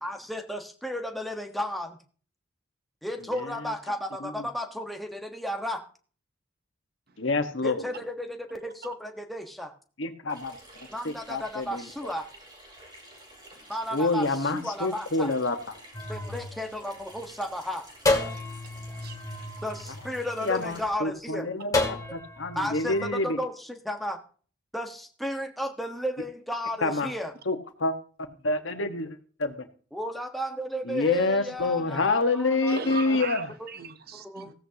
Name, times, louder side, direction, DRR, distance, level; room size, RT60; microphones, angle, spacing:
voice 1, 0.0-2.0 3.0-5.8 7.6-9.7 10.9-12.3 13.7-15.3 16.1-17.8 19.6-21.5 22.5-24.2 24.7-27.3 29.9-33.2 33.6-33.7 34.1-34.5, equal, ahead, 1.3 m, -33 dB
voice 2, 3.3-3.7 4.2-4.5 7.2-7.9 10.0-10.6 11.0-12.1 13.9-15.8 20.4-23.4 26.8-27.1 27.4-27.9 28.4-29.7 30.8-33.5, left 3 dB, 70° left, 1.5 m, -28 dB
Water tap faucet / Sink (filling or washing), 10.3-20.9, right 1 dB, 25° right, 4.7 m, -51 dB
sound 1, 15.9-17.4 18.1-20.6 21.7-23.1, left 2 dB, 20° left, 2.1 m, -31 dB
voice 3, 18.4-19.6 32.7-34.5, right 4 dB, 55° right, 0.9 m, -40 dB
16.0 x 14.5 x 2.9 m
head